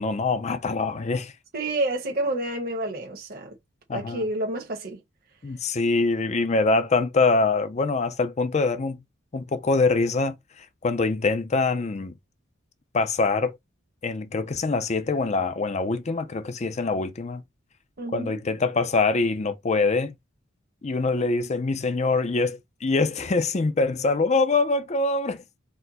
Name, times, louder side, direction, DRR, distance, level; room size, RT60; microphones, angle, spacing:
voice 1, 0.0-1.3 3.9-4.2 5.4-9.0 9.3-12.1 12.9-13.6 14.0-17.4 18.1-20.1 20.8-25.4, left 3 dB, 35° left, 0.5 m, -24 dB
voice 2, 1.5-3.5 3.9-5.0 18.0-18.4, right 1 dB, 50° right, 1.1 m, -29 dB
4.4 x 2.1 x 4.1 m
head